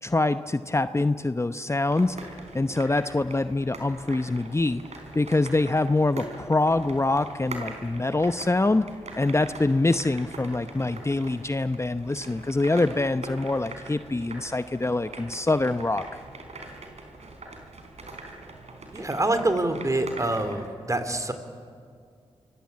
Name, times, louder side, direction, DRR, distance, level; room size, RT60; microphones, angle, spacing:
voice 1, 0.0-2.2 2.5-4.8 5.1-8.9 9.1-16.0, left 2 dB, 25° left, 11 dB, 0.8 m, -25 dB
sound 1, 1.9-20.7, right 2 dB, 65° right, 4.6 m, -42 dB
voice 2, 18.9-21.3, right 2 dB, 25° right, 9 dB, 3.5 m, -26 dB
25.5 x 22.5 x 8.6 m, 2.2 s
supercardioid pair, 40°, 12 cm